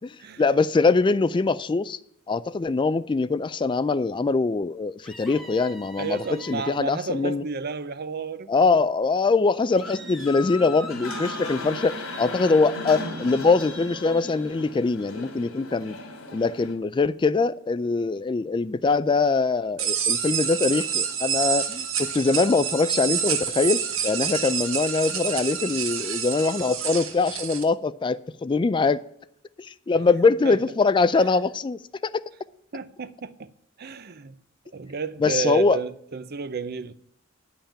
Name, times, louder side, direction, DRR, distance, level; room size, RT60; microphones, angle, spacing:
voice 1, 0.0-2.0 2.3-7.4 8.5-16.0 16.3-29.0 29.6-32.2 35.2-35.8, left 4 dB, 25° left, 0.3 m, -23 dB
sound 1, 5.0-6.8 9.7-11.8, left 1 dB, ahead, 1.1 m, -40 dB
voice 2, 6.0-8.5 30.4-30.6 32.7-33.5 33.8-34.4 34.7-36.9, right 5 dB, 50° right, 0.6 m, -31 dB
sound 2, 9.8-16.7, left 2 dB, 90° left, 2.6 m, -37 dB
sound 3, 19.8-27.6, right 8 dB, 70° right, 1.4 m, -28 dB
10.5 x 5.6 x 8.5 m
head